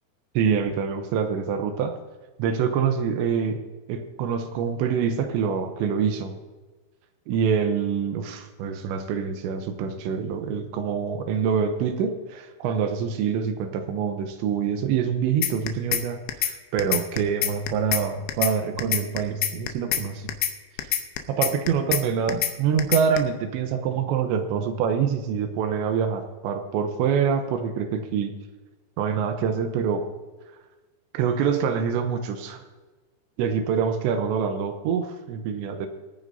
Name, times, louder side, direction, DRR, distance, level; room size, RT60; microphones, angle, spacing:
voice 1, 0.3-2.0 2.4-3.6 3.9-6.4 7.3-20.3 20.8-20.9 21.3-28.3 29.0-30.0 31.1-32.6 33.4-35.9, right 7 dB, 85° right, 6 dB, 3.1 m, -25 dB
sound 1, 15.4-16.0 16.3-16.5 16.8-18.0 18.3-18.5 18.8-20.0 20.3-20.5 20.8-22.0 22.3-22.5 22.8-23.2, left 11 dB, 90° left, 3.1 m, -25 dB
23.0 x 9.6 x 2.7 m, 1.3 s
omnidirectional pair, 5.1 m